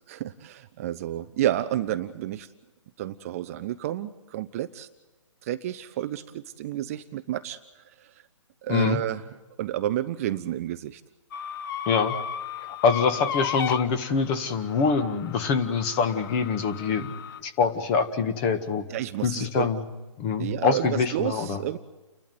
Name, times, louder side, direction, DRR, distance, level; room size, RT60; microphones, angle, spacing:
voice 1, 0.1-2.5 3.0-4.9 5.4-8.2 8.6-9.3 9.6-11.0 18.9-19.7 20.4-21.8, right 13 dB, 30° right, 11 dB, 0.7 m, -30 dB
voice 2, 8.7-9.0 11.9-12.2 12.6-17.1 17.4-18.8 19.2-19.8 20.2-21.6, left 5 dB, 25° left, 10 dB, 1.8 m, -25 dB
sound 1, 11.3-17.4, left 8 dB, 40° left, 0.9 m, -35 dB
30.0 x 12.0 x 9.4 m, 1.2 s
hypercardioid pair, 155°, 16 cm